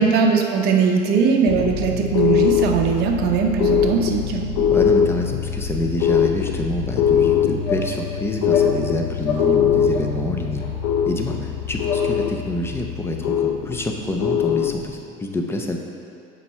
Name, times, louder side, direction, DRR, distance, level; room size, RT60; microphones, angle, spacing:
voice 1, 0.0-4.5, right 5 dB, 55° right, 2 dB, 0.8 m, -20 dB
sound 1, 1.5-14.9, left 8 dB, 90° left, 0.5 m, -22 dB
voice 2, 4.7-10.6 11.1-15.8, left 1 dB, 10° left, 2 dB, 0.6 m, -27 dB
sound 2, 7.0-7.1 7.6-7.8 8.4-8.7 9.2-9.5 9.8-10.1 10.5-10.7 11.2-11.3 11.8-12.0, left 7 dB, 65° left, 1.6 m, -27 dB
7.1 x 4.7 x 4.3 m, 2.4 s
cardioid pair, 135°, 20 cm